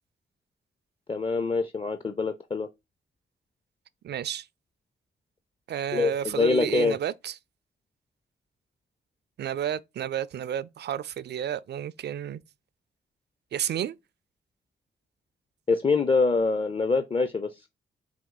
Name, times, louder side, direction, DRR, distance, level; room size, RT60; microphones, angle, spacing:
voice 1, 1.1-2.7 5.9-7.0 15.7-17.7, left 4 dB, 25° left, 0.6 m, -25 dB
voice 2, 4.0-4.5 5.7-7.4 9.4-12.4 13.5-14.0, right 10 dB, 55° right, 0.4 m, -31 dB
4.4 x 2.3 x 3.8 m
supercardioid pair, 40°, 21 cm